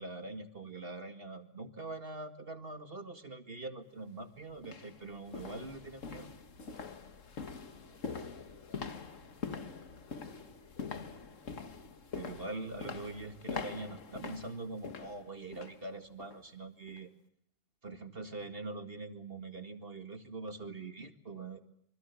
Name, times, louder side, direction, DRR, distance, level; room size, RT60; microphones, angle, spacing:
voice 1, 0.0-6.3 12.1-17.1 17.8-21.6, right 3 dB, 35° right, 8 dB, 2.2 m, -43 dB
sound 1, 3.9-4.0 4.6-15.8 16.2-16.4 16.9-17.0, left 5 dB, 55° left, 1.9 m, -44 dB
voice 2, 7.5-11.0, left 2 dB, 85° left, 6 dB, 5.6 m, -64 dB
26.0 x 25.5 x 8.4 m, 0.69 s
omnidirectional pair, 1.7 m